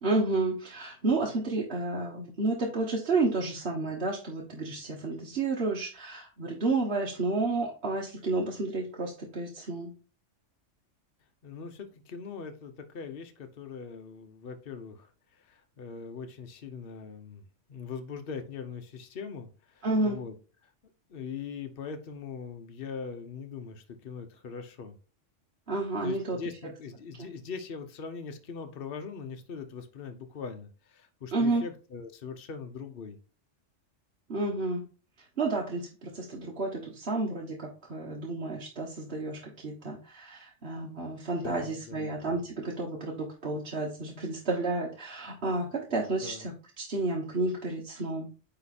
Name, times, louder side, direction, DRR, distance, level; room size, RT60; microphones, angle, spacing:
voice 1, 0.0-9.9 19.8-20.2 25.7-26.4 31.3-31.6 34.3-34.8 35.2-48.3, right 3 dB, 55° right, -2 dB, 1.4 m, -31 dB
voice 2, 11.4-15.1 15.3-17.4 17.7-20.3 21.1-25.0 26.0-33.2 41.4-42.1 46.2-46.4, left 5 dB, 50° left, 6 dB, 1.1 m, -41 dB
9.6 x 3.2 x 4.2 m, 0.36 s
omnidirectional pair, 1.3 m